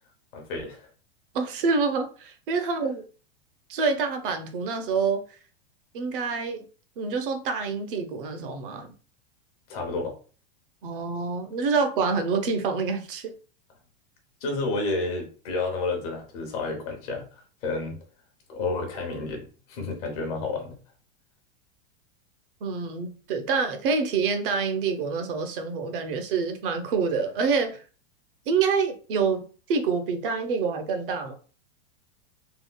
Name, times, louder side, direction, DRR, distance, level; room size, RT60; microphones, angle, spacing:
voice 1, 0.3-0.9 9.7-10.1 14.4-18.0 18.5-20.8, left 3 dB, 35° left, 0.8 m, -30 dB
voice 2, 1.3-3.0 3.7-5.2 5.9-6.6 7.0-8.9 10.8-13.3 22.6-27.8 28.5-29.4 29.7-31.3, right 5 dB, 55° right, 0.6 m, -27 dB
3.6 x 2.2 x 2.2 m
supercardioid pair, 175°, 33 cm